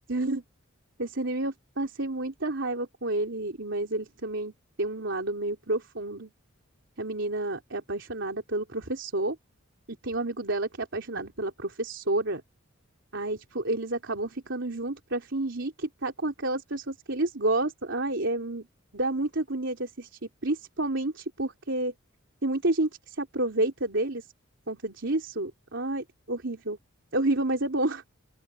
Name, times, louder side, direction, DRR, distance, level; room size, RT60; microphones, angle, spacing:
voice 1, 0.1-0.4 1.0-4.5 4.8-6.3 7.0-9.4 9.9-12.4 13.1-18.7 18.9-21.9 22.4-24.3 24.7-26.8 27.1-28.0, right 2 dB, 60° right, 3.8 m, -30 dB
open air
head